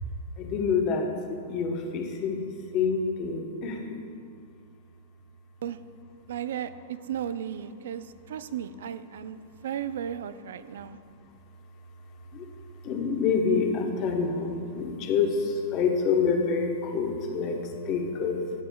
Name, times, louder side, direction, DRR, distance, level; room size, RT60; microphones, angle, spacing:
voice 1, 0.4-4.0 11.3-11.4 12.3-12.5 12.8-18.4, left 5 dB, 40° left, 3 dB, 0.9 m, -27 dB
voice 2, 6.3-11.0, right 9 dB, 75° right, 13 dB, 0.3 m, -35 dB
12.5 x 7.8 x 2.3 m, 2.2 s
hypercardioid pair, 140°, 0 cm